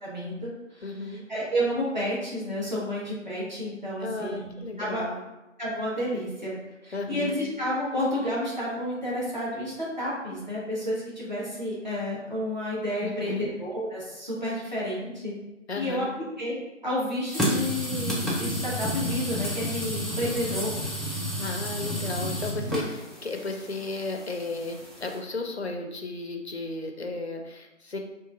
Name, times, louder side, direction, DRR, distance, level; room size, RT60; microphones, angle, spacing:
voice 1, 0.0-0.9 1.3-5.1 5.6-6.5 6.8-15.3 15.7-16.0 16.4-16.6 16.8-20.7, equal, 35° right, -7 dB, 1.0 m, -30 dB
voice 2, 0.8-1.2 4.0-5.2 6.9-7.3 13.0-13.6 15.7-16.1 21.1-28.0, left 3 dB, 55° left, 3 dB, 0.5 m, -34 dB
sound 1, 17.3-25.2, equal, ahead, 0.4 m, -31 dB
3.8 x 2.5 x 2.4 m, 1.0 s
figure-of-eight pair, 170°, 39 cm